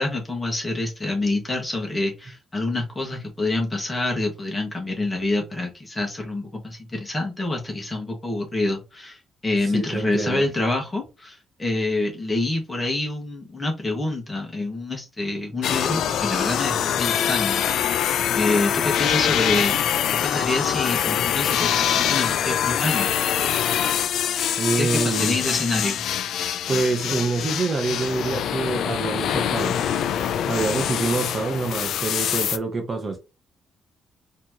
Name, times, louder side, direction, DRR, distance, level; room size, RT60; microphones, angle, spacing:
voice 1, 0.0-18.0 18.3-19.8 20.1-23.1 24.8-26.0, left 2 dB, 15° left, 1.4 m, -27 dB
voice 2, 9.7-10.4 24.6-25.4 26.7-29.9 30.5-33.2, right 3 dB, 30° right, 0.7 m, -26 dB
sound 1, 15.6-32.6, left 9 dB, 70° left, 0.4 m, -24 dB
4.3 x 3.0 x 2.8 m
cardioid pair, 155°, 0 cm